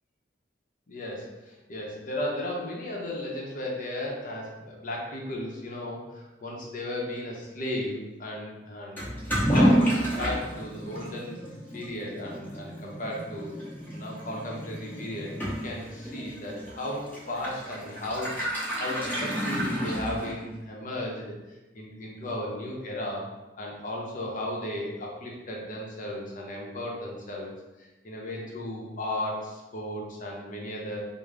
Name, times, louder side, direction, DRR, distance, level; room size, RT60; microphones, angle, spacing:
voice 1, 0.9-9.1 9.3-11.4 11.7-13.5 13.9-21.3 21.7-23.3 23.6-27.5 27.8-31.0, left 1 dB, 50° left, -1 dB, 0.7 m, -35 dB
Toilet flush / Liquid, 9.0-20.6, equal, 10° left, 0.8 m, -30 dB
3.6 x 2.0 x 3.3 m, 1.1 s
head